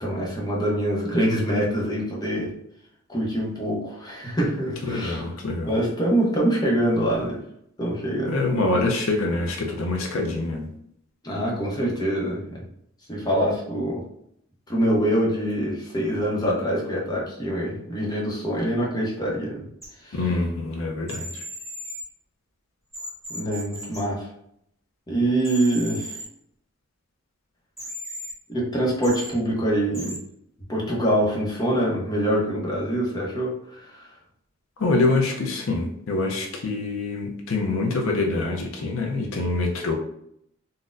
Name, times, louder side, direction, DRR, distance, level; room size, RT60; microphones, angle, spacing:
voice 1, 0.0-2.5 3.1-5.2 5.6-7.4 7.8-8.3 11.2-12.6 13.1-14.0 14.7-19.6 20.0-20.2 23.3-24.3 25.1-26.2 28.5-30.2 30.7-34.1, right 1 dB, 20° left, -4 dB, 0.7 m, -25 dB
voice 2, 4.8-5.7 8.3-10.7 20.1-21.4 34.8-39.9, left 2 dB, 80° left, 2 dB, 0.5 m, -25 dB
sound 1, 19.8-19.9 21.1-22.0 22.9-24.0 25.4-26.2 27.8-28.3 29.0-29.3 29.9-30.2, equal, ahead, 1.1 m, -36 dB
3.9 x 2.1 x 2.5 m, 0.71 s
head